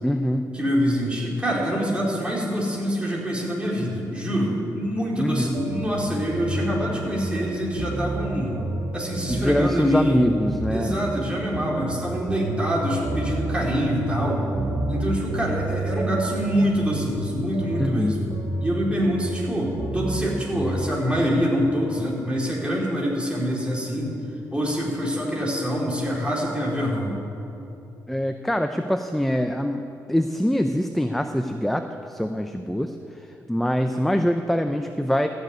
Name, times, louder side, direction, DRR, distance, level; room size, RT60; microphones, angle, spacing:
voice 1, 0.0-0.5 5.2-5.6 9.3-11.0 17.8-18.1 28.1-32.9 33.5-35.3, equal, 5° left, 7 dB, 0.6 m, -24 dB
voice 2, 0.5-8.6 8.9-10.3 10.7-14.4 14.9-18.3 18.6-24.2 24.5-27.2, equal, 15° right, -4 dB, 4.0 m, -25 dB
sound 1, 5.5-21.1, right 2 dB, 65° right, 1.4 m, -30 dB
14.0 x 6.7 x 9.6 m, 2.8 s
cardioid pair, 70°, 7 cm